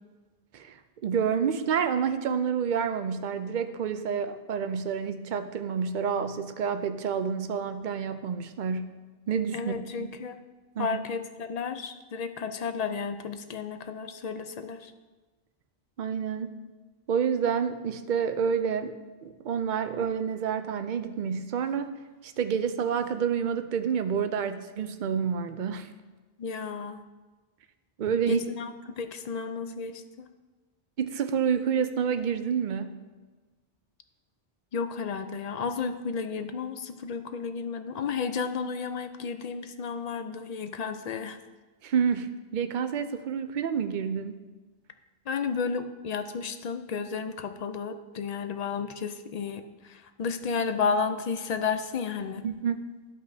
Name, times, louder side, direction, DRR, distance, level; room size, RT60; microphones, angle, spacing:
voice 1, 0.5-9.0 9.3-10.1 10.8-11.0 16.0-16.5 17.1-19.0 19.2-25.9 28.0-28.4 31.0-32.9 41.8-44.4 52.4-52.8, right 7 dB, 55° right, 9 dB, 0.7 m, -29 dB
voice 2, 9.5-10.4 10.8-14.9 26.4-27.0 28.1-30.3 34.7-41.4 45.3-52.4, left 5 dB, 50° left, 9 dB, 0.5 m, -32 dB
14.0 x 5.4 x 2.7 m, 1.3 s
omnidirectional pair, 1.0 m